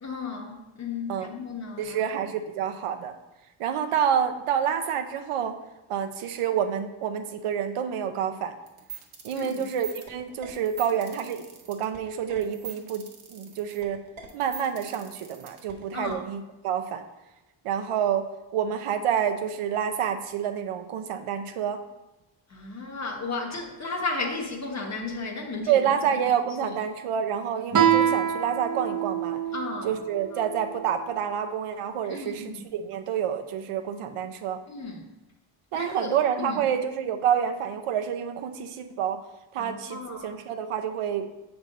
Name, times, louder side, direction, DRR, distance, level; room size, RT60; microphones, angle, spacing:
voice 1, 0.0-2.1 9.3-9.7 15.9-16.2 22.5-26.2 26.6-26.7 29.5-30.0 30.3-30.4 32.1-32.5 34.7-35.1 35.7-36.6 39.6-40.4, left 3 dB, 35° left, 1 dB, 1.2 m, -34 dB
voice 2, 1.8-3.1 3.6-5.6 5.9-8.6 9.2-14.0 14.3-17.0 17.6-21.8 25.7-29.4 29.8-34.6 35.7-39.2 39.5-41.3, right 8 dB, 90° right, 7 dB, 0.8 m, -28 dB
sound 1, 8.7-16.1, right 6 dB, 70° right, 1.5 m, -43 dB
Guitar, 27.7-31.0, right 9 dB, 40° right, 0.8 m, -26 dB
7.4 x 3.5 x 5.2 m, 1.0 s
wide cardioid pair, 120°, 50 cm